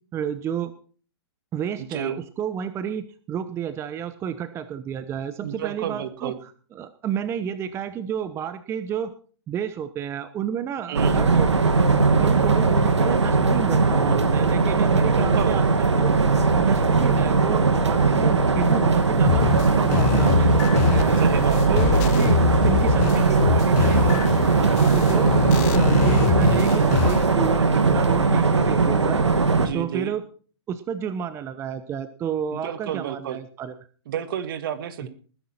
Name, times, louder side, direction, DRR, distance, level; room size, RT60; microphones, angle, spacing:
voice 1, 0.1-0.7 1.5-9.1 9.5-11.5 12.2-16.1 16.5-20.5 20.9-21.3 21.7-25.4 25.7-29.3 29.7-30.2 30.7-33.7, right 8 dB, 20° right, 12 dB, 0.8 m, -31 dB
voice 2, 1.8-2.2 5.4-6.4 10.9-11.2 15.1-15.6 21.2-21.8 29.6-30.1 32.5-33.4 34.1-35.1, right 9 dB, 50° right, 12 dB, 1.8 m, -31 dB
sound 1, 10.9-29.7, right 4 dB, 85° right, 2.1 m, -19 dB
sound 2, 19.3-27.3, left 19 dB, 35° left, 0.6 m, -25 dB
19.5 x 10.5 x 4.3 m, 0.42 s
hypercardioid pair, 130°, 15 cm